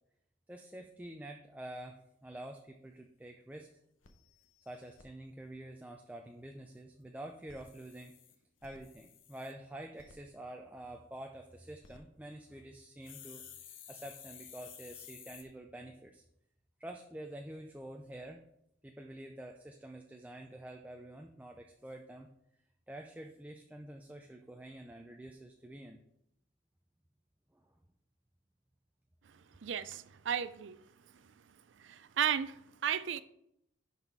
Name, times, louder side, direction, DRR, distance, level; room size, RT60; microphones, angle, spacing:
voice 1, 0.5-3.7 4.7-8.1 8.6-13.4 13.9-16.2 16.8-18.4 18.8-22.3 22.9-26.0 27.5-27.6, right 1 dB, 10° right, 0.4 m, -48 dB
sound 1, 2.9-3.0 3.4-3.5 3.7-3.8 4.0-5.1 7.3-9.5 10.0-10.2 11.6-12.0 13.0-15.4, left 8 dB, 80° left, 0.9 m, -53 dB
voice 2, 29.6-30.8 31.8-33.2, right 8 dB, 70° right, 0.4 m, -34 dB
11.0 x 4.2 x 4.6 m
head